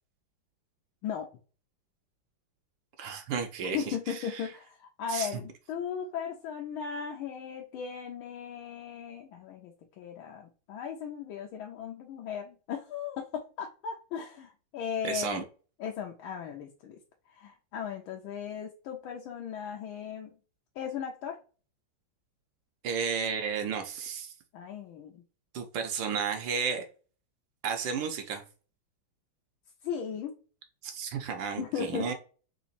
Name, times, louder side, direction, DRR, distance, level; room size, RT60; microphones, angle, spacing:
voice 1, 3.0-4.5 5.1-5.3 15.0-15.4 22.8-24.3 25.5-26.9 27.6-28.4 30.8-32.1, right 6 dB, 70° right, 6 dB, 1.3 m, -33 dB
voice 2, 3.6-15.4 15.8-17.0 17.3-20.3 20.8-21.4 24.5-25.2 29.8-30.3 31.6-32.1, left 7 dB, 80° left, 2 dB, 1.4 m, -37 dB
3.9 x 3.0 x 4.1 m, 0.37 s
omnidirectional pair, 2.3 m